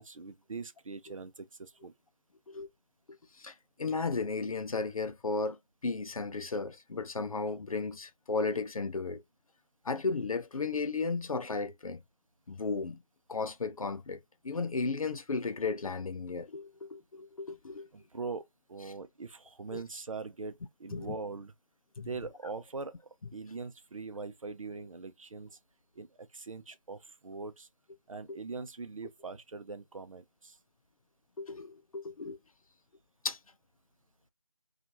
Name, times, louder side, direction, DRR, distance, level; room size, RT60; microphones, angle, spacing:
voice 1, 0.0-1.9 17.9-21.5 22.0-25.6 26.0-27.7 28.1-30.6, right 4 dB, 70° right, 0.6 m, -42 dB
voice 2, 3.1-5.6 5.8-9.2 9.8-12.0 12.5-13.0 13.3-17.9 19.7-19.8 20.9-21.1 22.0-22.1 31.4-32.4 33.2-33.4, left 4 dB, 85° left, 0.5 m, -34 dB
2.7 x 2.4 x 2.7 m
figure-of-eight pair, 165°, 18 cm